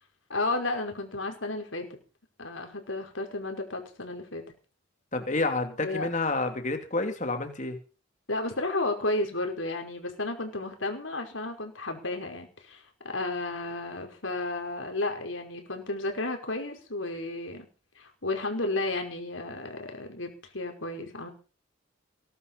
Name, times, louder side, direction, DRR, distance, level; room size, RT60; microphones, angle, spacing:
voice 1, 0.3-1.9 2.4-4.4 5.8-6.1 8.3-17.7 18.0-21.3, left 2 dB, 75° left, 4 dB, 5.3 m, -32 dB
voice 2, 5.1-7.8, left 2 dB, 40° left, 6 dB, 3.1 m, -29 dB
21.0 x 11.5 x 5.5 m, 0.36 s
head